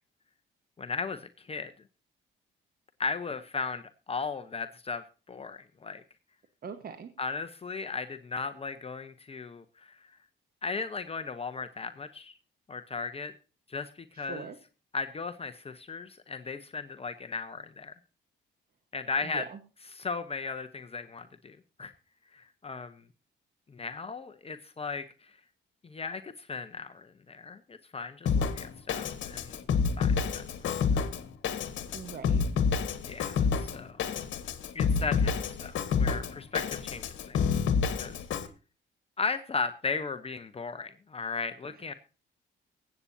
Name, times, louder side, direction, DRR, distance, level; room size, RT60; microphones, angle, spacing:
voice 1, 0.8-1.7 3.0-6.0 7.2-10.1 10.6-12.4 12.7-13.3 13.7-13.9 14.2-14.5 14.9-17.9 18.9-19.4 19.9-21.9 22.3-23.0 23.7-25.3 25.8-29.6 30.0-31.1 33.1-34.0 34.7-37.4 38.0-38.5 39.2-41.9, left 4 dB, 30° left, 9 dB, 0.9 m, -36 dB
voice 2, 6.6-7.1 14.1-14.6 19.2-19.6 31.9-32.4 41.7-41.9, right 6 dB, 50° right, 8 dB, 1.3 m, -42 dB
Drum kit, 28.3-38.5, left 6 dB, 70° left, 1.5 m, -29 dB
23.0 x 8.5 x 2.7 m, 0.33 s
cardioid pair, 90°, 20 cm